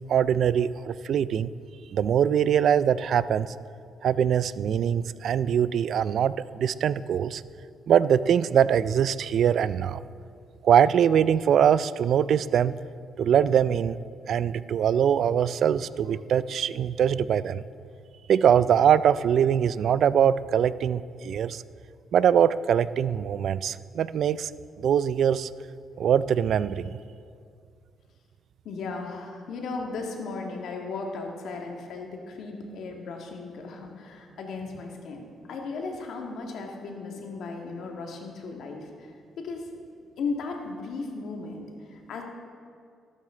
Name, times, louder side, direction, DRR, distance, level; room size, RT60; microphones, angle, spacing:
voice 1, 0.1-1.5 1.9-3.5 4.0-7.4 7.9-10.0 10.6-12.8 13.2-14.0 14.3-17.6 18.3-21.6 22.1-24.5 24.8-25.5 26.0-27.0, right 8 dB, 65° right, 16 dB, 0.3 m, -22 dB
voice 2, 28.6-39.7 40.2-42.2, left 4 dB, 75° left, 1 dB, 1.9 m, -36 dB
13.0 x 12.0 x 3.9 m, 2.3 s
cardioid pair, 90°, 0 cm